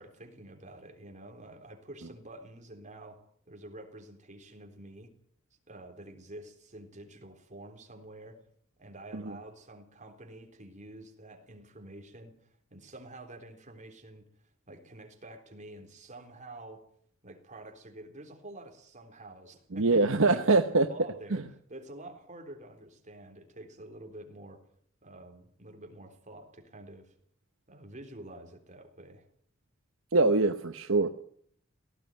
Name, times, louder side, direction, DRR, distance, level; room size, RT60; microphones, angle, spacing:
voice 1, 0.0-5.1 5.7-8.4 8.8-14.3 14.7-16.8 17.2-20.6 20.9-21.4 21.7-24.6 25.0-27.1 27.7-29.2, right 1 dB, 35° right, 5 dB, 3.8 m, -48 dB
voice 2, 19.7-20.9 21.3-21.4 30.1-31.1, right 3 dB, 70° right, 8 dB, 1.0 m, -24 dB
18.0 x 16.0 x 9.3 m, 0.64 s
head